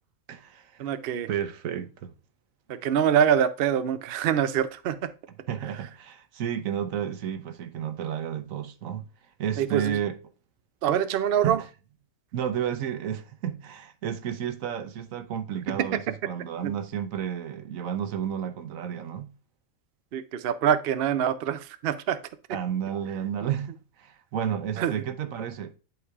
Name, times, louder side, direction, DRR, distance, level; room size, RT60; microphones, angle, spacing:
voice 1, 0.3-0.9 1.3-2.1 5.5-9.0 9.4-10.2 11.4-11.6 12.3-19.3 22.5-25.7, right 9 dB, 80° right, 1.2 m, -31 dB
voice 2, 0.8-1.3 2.7-5.1 9.6-10.0 10.8-11.6 15.7-16.0 16.6-16.7 20.1-22.2 24.8-24.9, right 9 dB, 60° right, 0.7 m, -25 dB
11.0 x 4.6 x 2.4 m
omnidirectional pair, 1.4 m